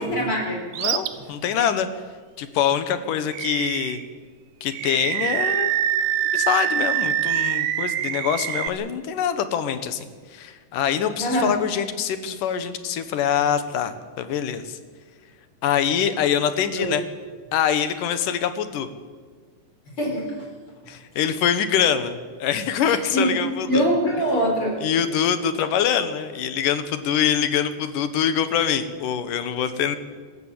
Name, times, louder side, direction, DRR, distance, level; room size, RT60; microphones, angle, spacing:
voice 1, 0.0-0.6 1.3-1.4 11.2-11.5 16.7-16.9 20.0-20.3 22.8-23.3 23.7-24.8, equal, 40° left, 1 dB, 4.7 m, -23 dB
Animal, 0.7-1.1 1.6-1.7 3.3-4.1 4.7-8.7, right 12 dB, 85° right, 2.6 m, -24 dB
voice 2, 0.8-1.9 2.4-4.0 4.6-6.0 6.3-14.8 15.6-17.0 17.5-18.9 20.9-23.8 24.8-30.0, left 8 dB, 70° left, 11 dB, 2.7 m, -24 dB
26.0 x 14.0 x 8.5 m, 1.5 s
omnidirectional pair, 4.0 m